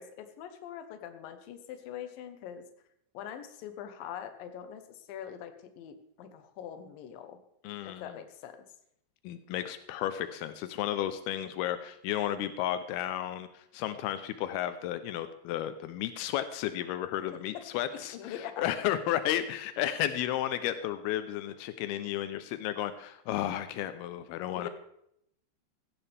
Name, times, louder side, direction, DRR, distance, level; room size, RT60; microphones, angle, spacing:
voice 1, 0.0-2.6 3.1-7.4 7.8-8.6 17.5-17.6 17.9-18.7 24.5-24.7, left 9 dB, 70° left, 8 dB, 2.2 m, -43 dB
voice 2, 7.6-8.1 9.2-24.7, left 12 dB, 90° left, 11 dB, 2.2 m, -33 dB
16.0 x 14.0 x 3.5 m, 0.75 s
omnidirectional pair, 5.4 m